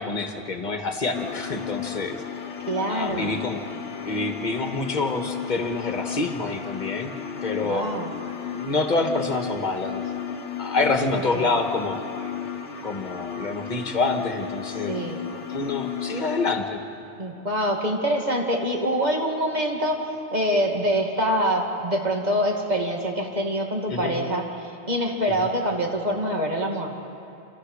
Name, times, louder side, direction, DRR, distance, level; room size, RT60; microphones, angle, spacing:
voice 1, 0.0-2.2 2.9-3.6 4.1-7.1 7.4-7.9 8.5-10.0 10.6-12.3 12.8-15.0 15.5-16.8 23.9-24.1 25.3-25.5, left 3 dB, 40° left, 4 dB, 1.7 m, -27 dB
sound 1, 1.1-16.5, left 8 dB, 70° left, 1.3 m, -34 dB
voice 2, 2.7-3.4 7.6-8.1 11.3-11.5 14.9-15.2 17.2-20.0 20.3-24.4 24.9-26.9, equal, 35° right, 1 dB, 2.4 m, -25 dB
29.0 x 14.0 x 6.6 m, 2.7 s
omnidirectional pair, 1.3 m